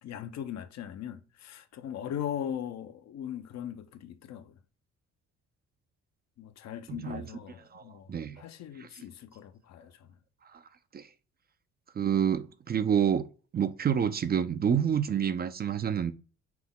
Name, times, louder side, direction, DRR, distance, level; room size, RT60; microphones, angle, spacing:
voice 1, 0.0-4.6 6.4-10.2, left 9 dB, 60° left, 0.6 m, -39 dB
voice 2, 6.9-7.2 7.7-8.4 8.8-8.9 10.4-10.6 10.9-11.1 11.9-13.2 13.5-16.1, right 8 dB, 35° right, 0.4 m, -28 dB
5.9 x 2.0 x 3.6 m
cardioid pair, 90°, 30 cm